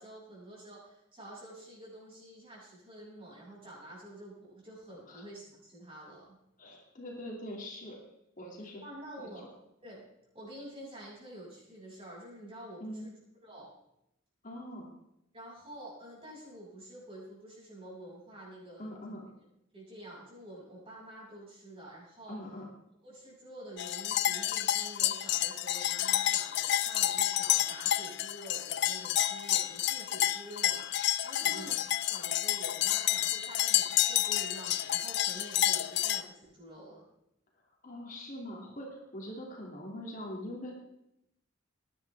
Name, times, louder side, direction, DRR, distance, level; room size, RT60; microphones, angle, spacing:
voice 1, 0.0-6.4 8.6-9.4 9.8-10.0 10.3-13.1 13.4-13.7 15.3-19.2 19.7-22.4 23.0-37.0, right 1 dB, 30° right, -5 dB, 6.5 m, -48 dB
voice 2, 6.6-8.0 8.4-8.8 9.2-9.3 12.8-13.1 14.4-14.9 18.8-19.3 22.3-22.7 31.4-31.7 37.8-40.8, equal, 40° left, -1 dB, 2.5 m, -43 dB
sound 1, 23.8-36.2, left 13 dB, 55° left, 0.5 m, -30 dB
20.0 x 11.0 x 3.5 m, 0.81 s
head